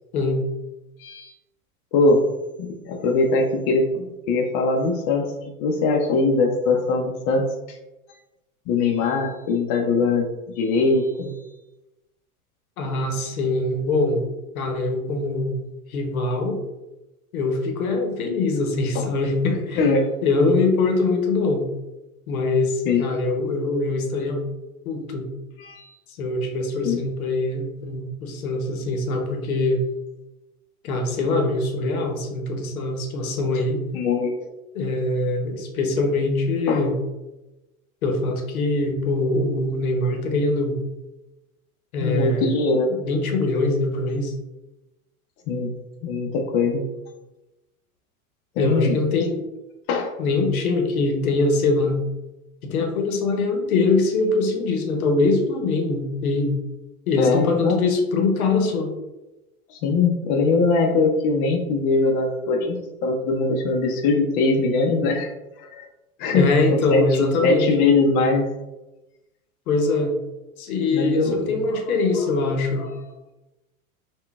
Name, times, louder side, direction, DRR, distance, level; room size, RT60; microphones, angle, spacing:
voice 1, 1.0-1.3 1.9-2.2 2.6-5.3 5.6-7.8 8.7-10.3 10.6-11.3 18.9-19.1 19.8-20.1 22.9-23.1 25.6-25.8 26.8-27.1 33.9-34.4 36.7-36.8 42.0-42.9 45.5-45.7 46.0-46.8 48.6-49.0 49.9-50.1 57.2-57.8 59.7-65.3 65.6-65.9 66.2-68.5 70.9-71.8 72.8-72.9, left 3 dB, 40° left, 2 dB, 0.5 m, -21 dB
voice 2, 12.8-14.2 14.5-15.6 15.9-16.6 17.3-19.9 20.2-21.7 22.3-24.4 24.9-25.3 26.2-29.8 30.8-33.8 34.7-36.9 38.0-40.8 41.9-42.5 42.9-44.3 48.6-49.5 50.2-52.0 52.6-56.6 57.1-58.9 66.3-67.7 69.7-70.1 70.6-72.9, left 3 dB, 75° left, 3 dB, 0.8 m, -23 dB
3.6 x 2.2 x 2.2 m, 1.0 s
hypercardioid pair, 95°, 43 cm